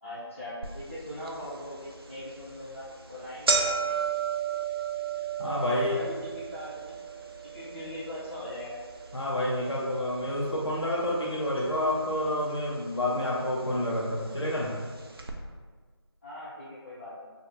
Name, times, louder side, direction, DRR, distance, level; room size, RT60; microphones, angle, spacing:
voice 1, 0.0-4.0 5.7-6.8 7.4-8.8 16.2-17.3, left 1 dB, 30° left, -12 dB, 1.2 m, -40 dB
sound 1, 0.6-0.7 1.3-1.4 2.2-2.4 2.7-2.8 3.1-11.3 11.6-12.3 13.1-13.2 14.1-14.2 14.5-14.6 15.2-15.3, right 5 dB, 60° right, 0.4 m, -33 dB
voice 2, 5.4-6.0 9.1-14.8, left 1 dB, 80° left, -4 dB, 0.6 m, -29 dB
2.5 x 2.4 x 3.1 m, 1.5 s
figure-of-eight pair, 170°, 14 cm